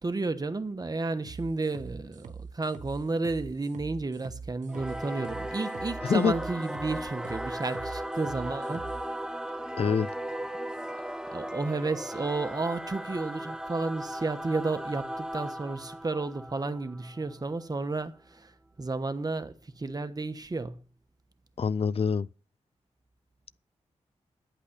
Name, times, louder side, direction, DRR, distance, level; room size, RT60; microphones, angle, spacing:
voice 1, 0.0-8.9 11.3-20.8, right 3 dB, 30° right, 1.1 m, -32 dB
sound 1, 1.2-9.0, right 5 dB, 90° right, 1.0 m, -43 dB
Singing / Musical instrument, 4.7-17.6, right 1 dB, 5° right, 0.9 m, -37 dB
voice 2, 6.0-6.3 9.8-10.1 21.6-22.3, left 6 dB, 55° left, 0.4 m, -25 dB
10.0 x 8.5 x 6.5 m
cardioid pair, 70°, 12 cm